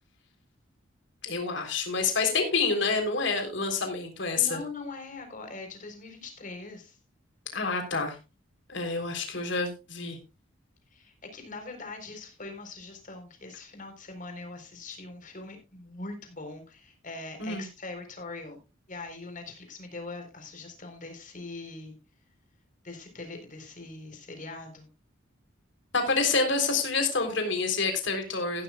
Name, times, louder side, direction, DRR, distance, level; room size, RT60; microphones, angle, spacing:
voice 1, 1.2-4.6 7.5-8.2 8.7-10.2 17.4-17.6 25.9-28.6, left 4 dB, 60° left, 5 dB, 3.7 m, -28 dB
voice 2, 4.3-7.0 8.9-9.5 10.9-18.6 18.9-21.9 22.8-24.9, left 3 dB, 40° left, 5 dB, 4.1 m, -42 dB
15.5 x 12.0 x 2.4 m, 0.28 s
head